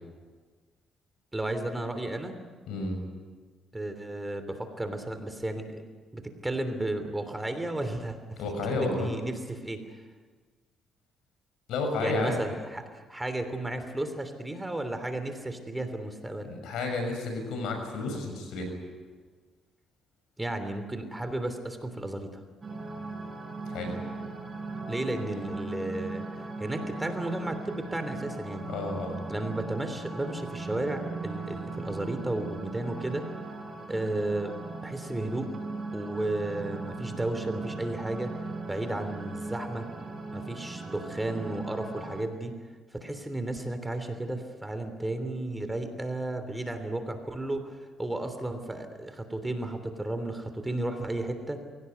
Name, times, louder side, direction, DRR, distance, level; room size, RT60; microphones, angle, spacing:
voice 1, 1.3-2.4 3.7-5.8 6.1-8.2 8.7-9.8 12.0-16.5 20.4-22.4 24.9-26.2 26.6-28.6 29.3-33.3 33.9-34.5 34.8-35.5 35.9-38.3 38.6-39.9 40.3-42.5 42.9-51.6, right 1 dB, 15° right, 8 dB, 3.1 m, -33 dB
voice 2, 2.7-3.0 8.4-9.1 11.7-12.4 16.4-18.8 23.7-24.0 28.7-29.2, left 3 dB, 85° left, 4 dB, 6.5 m, -31 dB
sound 1, 22.6-42.2, right 3 dB, 35° right, 7.6 m, -38 dB
23.0 x 17.5 x 9.5 m, 1.5 s
cardioid pair, 90°, 0 cm